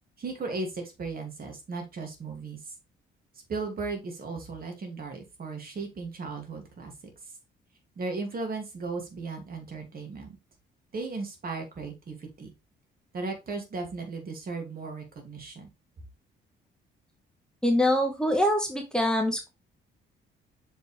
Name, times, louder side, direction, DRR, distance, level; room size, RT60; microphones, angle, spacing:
voice 1, 0.2-2.7 3.5-6.9 8.0-10.4 10.9-12.5 13.1-15.7, right 3 dB, 50° right, 3 dB, 2.5 m, -36 dB
voice 2, 17.6-19.5, left 1 dB, 5° left, 4 dB, 1.4 m, -24 dB
6.1 x 5.2 x 3.4 m, 0.24 s
cardioid pair, 90°, 20 cm